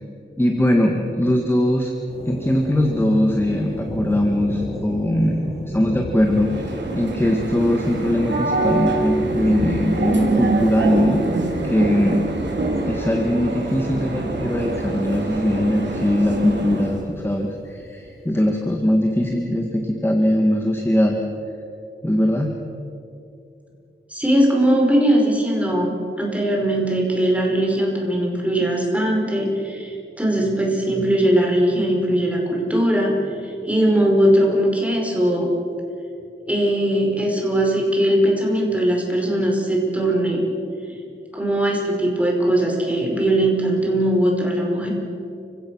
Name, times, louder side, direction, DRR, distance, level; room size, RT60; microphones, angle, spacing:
voice 1, 0.4-1.9 2.3-11.2 11.6-12.2 12.9-21.2 22.0-22.5, left 1 dB, 10° left, 2 dB, 1.8 m, -21 dB
sound 1, 2.1-18.2, equal, 30° left, 3.5 m, -35 dB
sound 2, 6.2-17.0, right 2 dB, 60° right, 3.5 m, -25 dB
voice 2, 24.1-33.2 33.4-35.5 36.5-40.4 41.3-44.9, right 1 dB, 5° right, -1 dB, 5.2 m, -20 dB
29.5 x 16.5 x 6.3 m, 2.6 s
wide cardioid pair, 110°, 20 cm